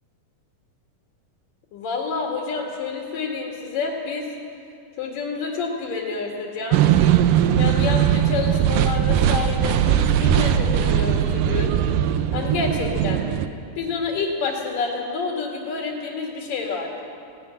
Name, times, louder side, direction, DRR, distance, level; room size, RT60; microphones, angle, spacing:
voice 1, 1.7-4.3 5.0-6.8 7.6-11.7 12.3-13.2 13.8-17.0, left 4 dB, 70° left, -1 dB, 3.7 m, -28 dB
sound 1, 6.7-13.5, right 10 dB, 80° right, 2.4 m, -19 dB
17.5 x 17.0 x 9.9 m, 2.4 s
omnidirectional pair, 4.1 m